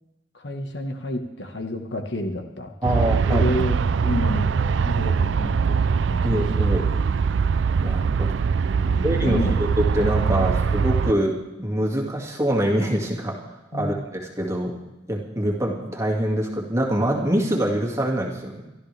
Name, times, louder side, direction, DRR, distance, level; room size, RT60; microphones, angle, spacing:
voice 1, 0.3-3.0 3.3-6.5 6.8-6.9 8.7-9.5 10.3-10.5 13.7-14.0, left 1 dB, 65° left, 5 dB, 1.4 m, -30 dB
voice 2, 2.8-3.5 6.2-6.9 7.8-8.3 9.0-13.4 13.7-14.8 15.1-18.6, right 1 dB, 15° right, -1 dB, 2.2 m, -24 dB
Aircraft, 2.8-11.1, right 5 dB, 70° right, 0.4 m, -22 dB
23.5 x 13.0 x 3.4 m, 1.0 s
head